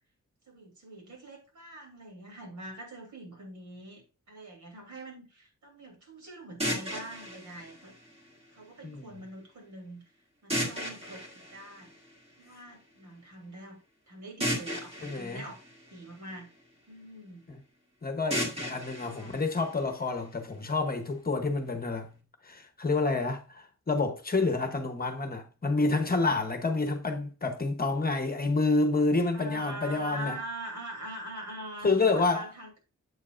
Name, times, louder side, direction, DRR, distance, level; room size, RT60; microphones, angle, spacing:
voice 1, 0.5-7.9 8.5-10.0 10.4-11.9 12.4-13.8 14.1-15.6 15.9-16.5 16.9-17.4 19.1-19.5 29.3-32.8, right 1 dB, 75° right, 3.1 m, -43 dB
sound 1, 6.6-8.6 10.5-12.5 14.4-16.6 18.3-20.3, equal, 20° right, 1.7 m, -36 dB
voice 2, 8.8-9.2 15.0-15.4 18.0-22.1 22.4-30.4 31.8-32.4, left 3 dB, 30° left, 0.9 m, -28 dB
7.9 x 7.3 x 2.5 m
wide cardioid pair, 170°, 30 cm